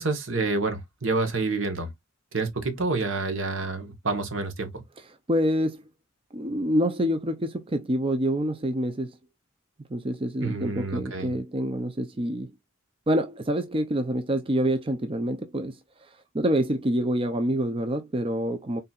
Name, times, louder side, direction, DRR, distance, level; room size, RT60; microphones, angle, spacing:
voice 1, 0.0-1.9 2.3-4.8 10.4-11.3, right 3 dB, 70° right, 1.2 m, -28 dB
voice 2, 5.3-5.8 6.3-9.2 9.9-12.5 13.1-16.1 16.3-18.8, equal, 25° right, 0.5 m, -26 dB
4.2 x 3.9 x 2.4 m
head